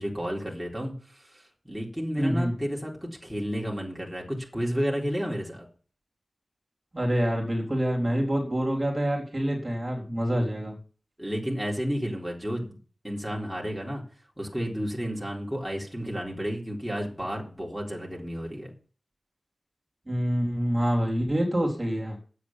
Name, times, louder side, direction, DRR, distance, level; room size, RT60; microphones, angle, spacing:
voice 1, 0.0-5.7 11.2-12.8 13.0-14.0 14.4-18.7, equal, 5° right, -2 dB, 3.8 m, -32 dB
voice 2, 2.2-2.5 6.9-10.7 20.1-22.2, equal, 30° right, -1 dB, 3.7 m, -26 dB
9.3 x 8.3 x 7.2 m, 0.40 s
wide cardioid pair, 55°, 0 cm